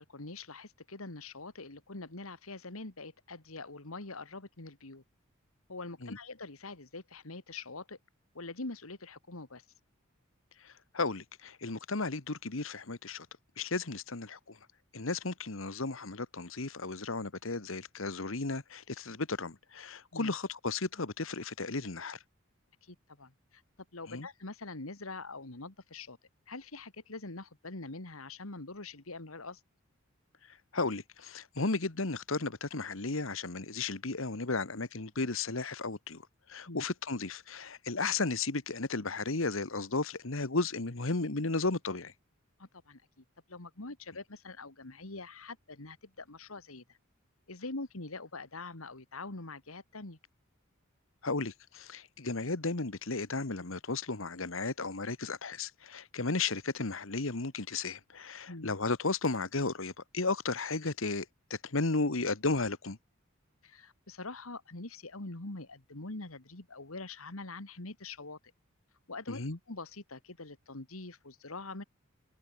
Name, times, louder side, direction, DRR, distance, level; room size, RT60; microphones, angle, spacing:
voice 1, 0.0-5.0 5.7-8.0 8.3-9.6 20.1-20.3 22.8-23.6 23.9-26.2 26.5-29.6 36.7-36.8 42.6-43.0 43.5-47.0 47.5-50.2 58.5-58.7 63.6-68.4 69.1-69.4 69.7-71.8, left 3 dB, 90° left, 2.3 m, -44 dB
voice 2, 10.6-13.3 13.6-14.5 14.9-22.2 24.1-24.3 30.7-36.2 36.5-42.1 51.2-61.2 61.5-63.0 69.3-69.6, left 3 dB, 70° left, 1.6 m, -34 dB
head